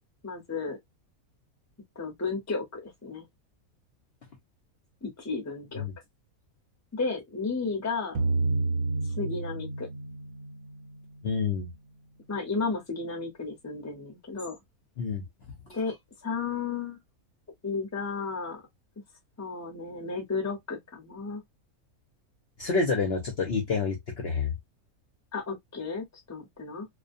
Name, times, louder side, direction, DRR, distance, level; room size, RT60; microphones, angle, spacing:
voice 1, 0.2-0.8 2.0-3.2 5.0-5.9 6.9-8.2 9.2-9.9 12.3-14.6 15.7-15.9 16.2-17.0 17.6-18.6 19.4-21.4 25.3-26.9, left 4 dB, 15° left, 0.6 m, -33 dB
sound 1, 8.2-11.3, right 3 dB, 75° right, 1.0 m, -30 dB
voice 2, 11.2-11.7 15.0-15.2 22.6-24.5, left 4 dB, 55° left, 0.8 m, -28 dB
2.4 x 2.2 x 2.5 m
omnidirectional pair, 1.6 m